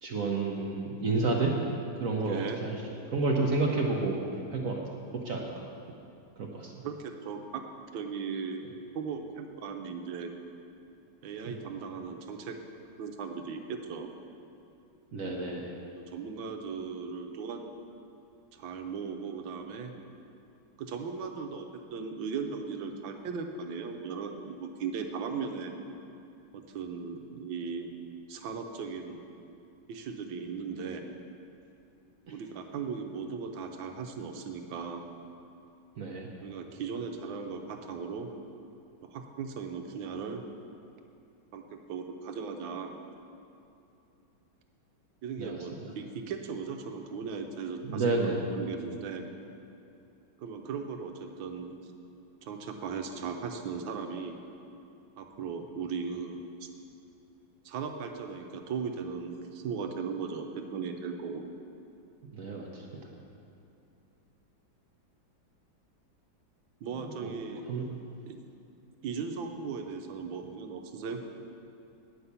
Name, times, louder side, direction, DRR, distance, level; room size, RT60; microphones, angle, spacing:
voice 1, 0.0-1.5 2.0-2.8 3.1-4.2 4.5-4.8 5.2-5.7 6.4-6.7 11.5-11.6 15.1-15.7 36.0-36.3 45.4-45.6 47.8-48.4 62.3-62.8 67.0-67.3 67.7-67.8, right 3 dB, 55° right, 0 dB, 1.0 m, -30 dB
voice 2, 2.2-2.6 6.8-7.6 7.9-8.7 8.9-10.3 11.2-12.6 13.0-14.1 15.9-17.6 18.5-19.9 20.8-25.7 26.5-27.9 28.3-29.2 29.9-31.1 32.3-35.0 36.4-38.3 39.0-40.4 41.5-42.9 45.2-49.3 50.4-51.8 52.4-54.4 55.2-56.7 57.6-61.5 66.8-67.7 68.3-68.4 69.0-71.2, right 5 dB, 90° right, 5 dB, 1.5 m, -37 dB
9.3 x 5.6 x 8.1 m, 2.7 s
omnidirectional pair, 2.1 m